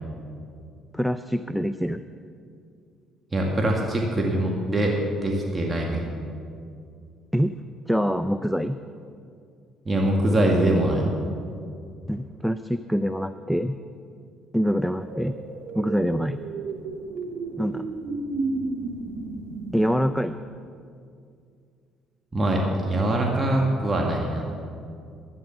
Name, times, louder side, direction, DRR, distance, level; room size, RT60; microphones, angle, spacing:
voice 1, 0.9-2.0 7.3-7.6 7.9-8.8 12.1-13.8 14.5-15.4 15.8-16.4 17.6-17.9 19.7-20.4, equal, ahead, 11 dB, 0.5 m, -25 dB
voice 2, 3.3-6.0 9.9-11.0 22.3-24.4, right 1 dB, 25° right, -1 dB, 2.0 m, -23 dB
sound 1, 15.0-20.0, right 3 dB, 65° right, 1.4 m, -33 dB
12.5 x 9.7 x 7.1 m, 2.4 s
hypercardioid pair, 55°, 0 cm